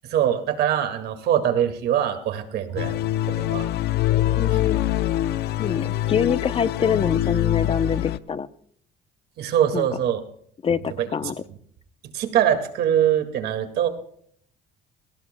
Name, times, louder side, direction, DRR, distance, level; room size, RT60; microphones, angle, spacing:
voice 1, 0.0-3.0 3.3-3.7 4.5-4.6 9.4-10.2 10.7-11.3 12.1-13.9, right 10 dB, 75° right, 7 dB, 2.0 m, -23 dB
sound 1, 2.8-8.2, left 13 dB, 80° left, 0.6 m, -24 dB
voice 2, 4.1-4.8 5.6-8.5 9.7-9.9 10.6-11.3, left 6 dB, 35° left, 14 dB, 0.7 m, -25 dB
22.0 x 17.5 x 2.2 m, 0.64 s
cardioid pair, 110°, 17 cm